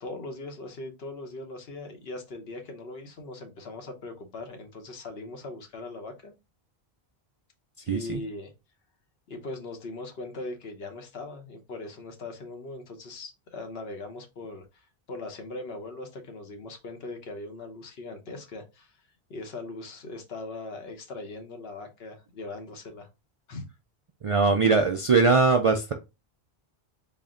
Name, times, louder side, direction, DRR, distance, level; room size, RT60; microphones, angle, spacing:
voice 1, 0.0-6.3 7.8-8.5 9.3-18.9 19.3-23.1 23.5-23.7, left 2 dB, 70° left, 1.1 m, -40 dB
voice 2, 7.9-8.2 24.2-25.9, right 4 dB, 55° right, 0.3 m, -21 dB
4.2 x 2.1 x 3.6 m
omnidirectional pair, 1.1 m